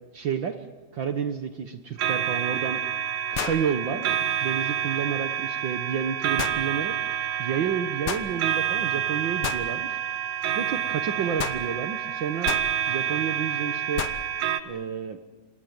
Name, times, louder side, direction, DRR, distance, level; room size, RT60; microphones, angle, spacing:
voice 1, 0.1-0.6 0.9-2.8 3.3-7.0 7.4-10.0 10.5-12.5 12.9-14.1 14.6-15.2, right 7 dB, 60° right, 9 dB, 1.3 m, -30 dB
sound 1, 2.0-14.6, right 10 dB, 80° right, 2.5 m, -28 dB
sound 2, 2.1-2.2 3.3-3.7 6.4-6.6 8.1-8.3 9.4-9.7 11.4-11.6 12.4-12.7 14.0-14.2, left 9 dB, 65° left, 1.5 m, -30 dB
26.5 x 19.0 x 9.4 m, 1.2 s
omnidirectional pair, 3.4 m